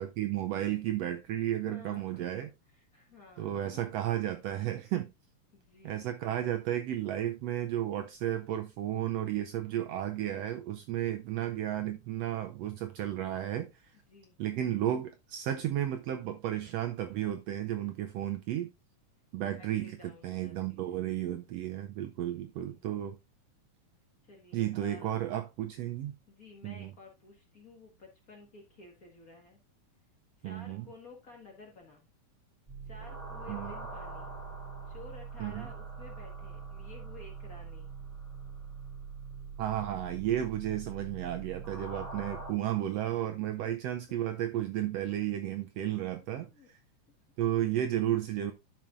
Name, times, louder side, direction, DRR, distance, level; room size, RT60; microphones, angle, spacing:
voice 1, 0.0-2.5 3.4-5.1 5.8-13.9 14.4-18.7 19.3-23.2 24.5-26.1 26.6-26.9 30.4-30.9 33.5-33.7 35.4-35.7 39.6-46.8 47.4-48.5, right 12 dB, 80° right, 1.5 m, -33 dB
voice 2, 1.7-2.3 2.7-3.8 5.5-6.2 14.1-14.3 19.4-21.0 22.3-22.8 24.2-25.2 26.3-29.6 30.4-32.1 32.8-34.3 34.8-37.9 45.8-45.9 46.3-46.7, left 3 dB, 40° left, 1.4 m, -53 dB
sound 1, 32.7-42.5, right 5 dB, 10° right, 3.7 m, -43 dB
12.0 x 5.9 x 2.5 m
omnidirectional pair, 3.5 m